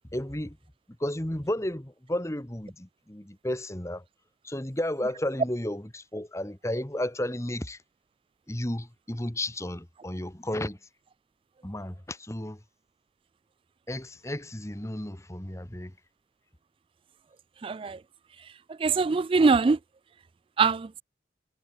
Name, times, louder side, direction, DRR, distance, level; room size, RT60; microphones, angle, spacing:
voice 1, 0.1-0.6 1.0-4.0 4.4-7.8 8.5-10.8 11.6-12.6 13.9-15.9, left 1 dB, 15° left, 1.4 m, -33 dB
voice 2, 17.6-18.0 18.8-19.8 20.6-21.0, right 4 dB, 30° right, 0.3 m, -22 dB
head